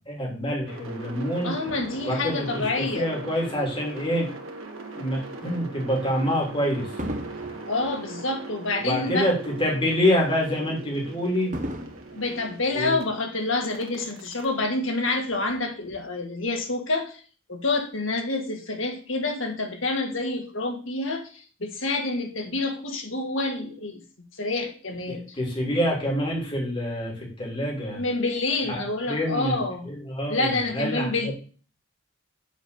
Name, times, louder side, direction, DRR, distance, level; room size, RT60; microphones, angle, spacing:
voice 1, 0.1-1.5 2.0-4.3 5.0-6.9 8.8-11.5 12.7-13.0 25.1-28.0 29.0-29.6 29.8-31.3, equal, 25° left, -1 dB, 2.8 m, -26 dB
sound 1, 0.6-13.0 13.6-15.8, right 3 dB, 85° right, 1.6 m, -41 dB
voice 2, 1.4-3.1 7.6-9.3 12.1-17.2 17.5-24.0 24.4-25.2 27.9-29.8 30.3-31.3, left 2 dB, 75° left, 4 dB, 1.7 m, -28 dB
Fireworks, 1.7-4.2 4.9-5.1 7.0-9.5 9.9-10.0 11.5-13.4 14.1-14.2, equal, 40° right, 1.1 m, -39 dB
7.2 x 4.3 x 6.7 m, 0.39 s
head